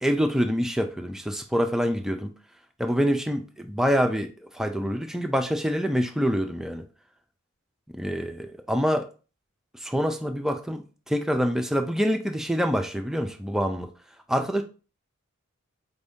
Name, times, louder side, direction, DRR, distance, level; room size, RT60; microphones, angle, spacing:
voice 1, 0.0-2.3 2.8-6.8 7.9-9.1 9.7-13.9 14.3-14.6, equal, ahead, 0.3 m, -26 dB
4.3 x 2.6 x 3.5 m
head